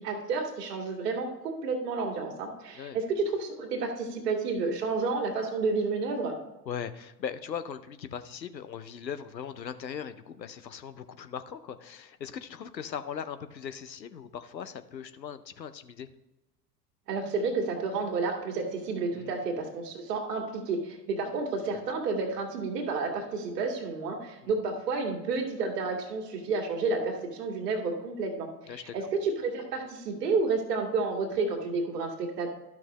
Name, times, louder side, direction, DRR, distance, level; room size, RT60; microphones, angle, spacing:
voice 1, 0.0-6.4 17.1-28.5 28.8-32.5, right 4 dB, 70° right, 2 dB, 2.0 m, -30 dB
voice 2, 6.7-16.1 19.1-19.4 21.7-21.8 24.4-24.5 28.7-29.0, left 8 dB, 85° left, 11 dB, 0.7 m, -39 dB
12.5 x 6.0 x 3.0 m, 1.0 s
figure-of-eight pair, 80°, 49 cm